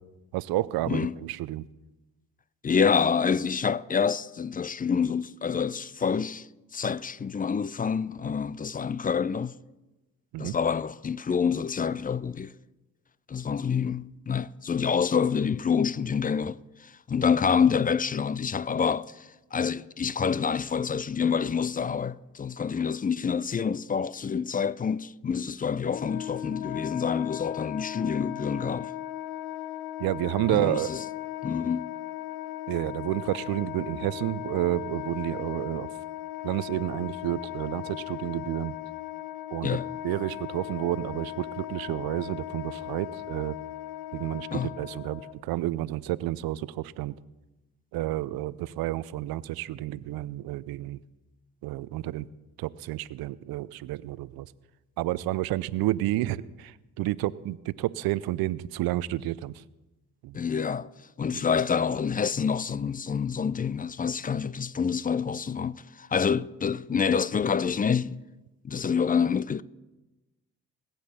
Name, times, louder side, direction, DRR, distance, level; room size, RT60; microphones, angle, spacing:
voice 1, 0.3-1.7 10.3-10.5 30.0-30.9 32.7-35.9 36.4-38.8 39.5-43.6 44.1-47.1 47.9-51.0 51.6-52.3 52.6-54.5 55.0-59.6 60.2-60.4 61.3-61.4, right 15 dB, 65° right, 0.6 m, -30 dB
voice 2, 0.9-1.2 2.6-6.5 6.7-9.6 10.4-12.5 13.3-28.9 30.5-31.0 31.4-31.9 39.6-39.9 44.5-44.7 60.3-60.9 61.2-68.2 68.6-69.6, left 6 dB, 20° left, 0.5 m, -27 dB
Wind instrument woodwind instrument, 25.8-45.3, left 14 dB, 75° left, 0.8 m, -38 dB
21.0 x 9.0 x 4.3 m
hypercardioid pair, 50°, 38 cm